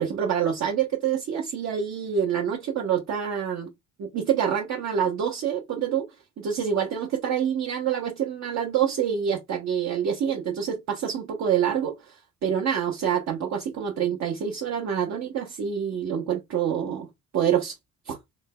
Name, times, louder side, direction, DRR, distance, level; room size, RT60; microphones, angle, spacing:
voice 1, 0.0-3.7 4.0-6.1 6.4-17.1 17.3-17.8 18.1-18.2, right 8 dB, 60° right, 0.8 m, -26 dB
3.3 x 2.2 x 3.6 m
cardioid pair, 90°, 30 cm